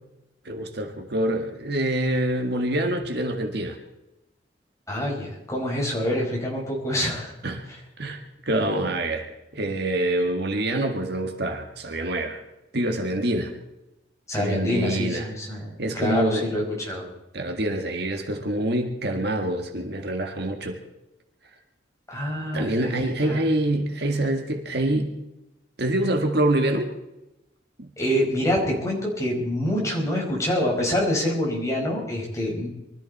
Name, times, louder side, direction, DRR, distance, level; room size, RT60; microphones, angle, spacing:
voice 1, 0.5-3.8 7.4-7.6 8.0-9.3 9.5-12.4 12.7-13.5 14.4-15.3 15.8-16.5 17.3-20.8 22.5-25.1 25.8-26.9 27.8-27.9, right 1 dB, 55° right, 4 dB, 1.9 m, -26 dB
voice 2, 4.9-7.3 14.3-15.7 15.9-17.1 22.1-23.4 28.0-32.7, left 1 dB, 15° left, -2 dB, 5.3 m, -26 dB
24.0 x 14.0 x 4.3 m, 0.95 s
head